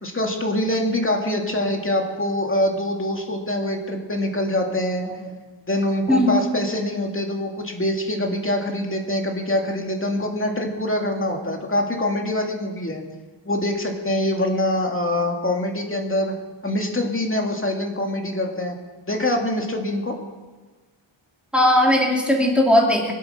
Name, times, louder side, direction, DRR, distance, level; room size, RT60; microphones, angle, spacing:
voice 1, 0.0-5.0 5.7-13.0 13.5-16.3 16.6-18.8 19.1-20.2, left 1 dB, 25° left, 1 dB, 2.4 m, -24 dB
voice 2, 21.5-23.1, left 1 dB, ahead, -1 dB, 3.1 m, -18 dB
25.0 x 8.4 x 6.6 m, 1.3 s
wide cardioid pair, 135°, 49 cm